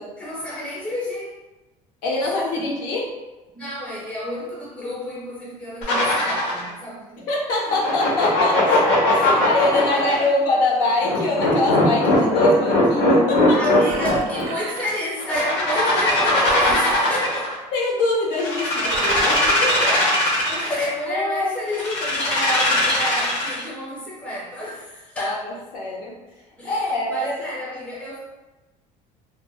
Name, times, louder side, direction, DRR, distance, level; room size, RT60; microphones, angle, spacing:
voice 1, 0.0-1.4 2.5-2.7 3.5-7.3 9.1-9.3 9.7-10.3 13.5-17.6 20.4-25.4 26.6-28.2, equal, 5° left, -7 dB, 0.6 m, -30 dB
voice 2, 2.0-3.1 7.3-13.6 17.7-20.0 21.1-21.6 25.2-26.2 26.6-27.4, left 2 dB, 70° left, -3 dB, 0.6 m, -24 dB
sound 1, 5.8-6.7 7.7-10.1 11.0-14.4 15.2-17.5 18.3-20.8 21.7-23.6, left 2 dB, 85° left, 0.9 m, -20 dB
Engine, 13.5-15.4 16.3-17.5 18.8-20.2 20.9-21.0, right 4 dB, 90° right, 0.4 m, -33 dB
2.6 x 2.0 x 2.3 m, 1.1 s
cardioid pair, 180°, 16 cm